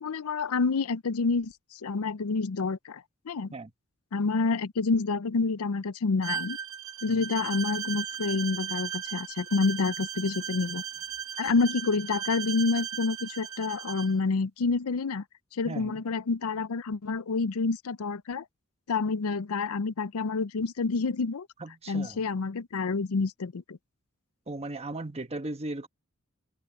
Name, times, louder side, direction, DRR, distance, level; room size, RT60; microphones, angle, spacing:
voice 1, 0.0-1.5 1.8-3.5 4.1-6.6 7.0-10.8 11.4-15.2 15.5-18.4 18.9-21.5 21.9-23.8, left 4 dB, 80° left, 0.6 m, -28 dB
Bowed string instrument, 6.2-14.1, right 9 dB, 75° right, 1.7 m, -36 dB
voice 2, 15.6-16.0 21.6-22.3 24.5-25.9, right 2 dB, 30° right, 1.3 m, -37 dB
open air
head